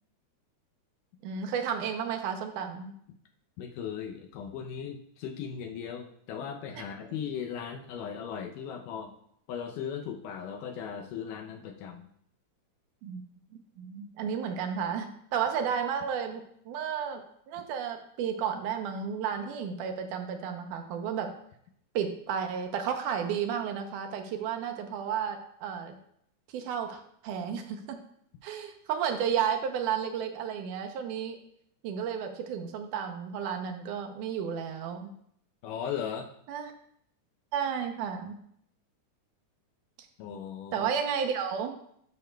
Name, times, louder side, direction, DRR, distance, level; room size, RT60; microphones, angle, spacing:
voice 1, 1.2-2.9 13.0-13.2 13.8-21.3 21.9-26.0 26.5-28.0 28.4-31.4 31.8-35.1 36.5-36.7 37.5-38.4 40.7-41.8, right 7 dB, 80° right, 5 dB, 2.2 m, -32 dB
voice 2, 3.6-9.1 9.5-12.1 35.6-36.3 40.2-40.9, left 7 dB, 85° left, 2 dB, 2.2 m, -37 dB
12.5 x 5.8 x 2.2 m, 0.69 s
omnidirectional pair, 3.7 m